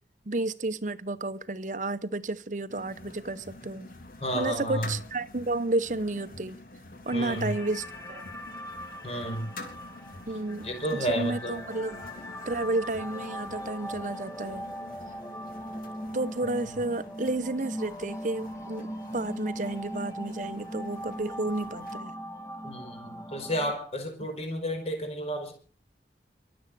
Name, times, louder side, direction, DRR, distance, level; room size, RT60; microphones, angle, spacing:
voice 1, 0.3-3.9 4.3-6.6 7.0-8.2 10.3-10.7 10.9-12.1 12.5-14.7 16.1-22.1, right 2 dB, 45° right, 0.9 m, -31 dB
sound 1, 2.7-22.0, left 2 dB, 55° left, 3.4 m, -48 dB
voice 2, 4.2-4.9 7.1-7.5 9.0-9.5 10.6-11.6 16.6-16.8 22.6-25.5, equal, 35° left, 5.5 m, -32 dB
sound 2, 7.1-23.7, equal, 20° left, 2.4 m, -40 dB
23.5 x 8.0 x 6.9 m
head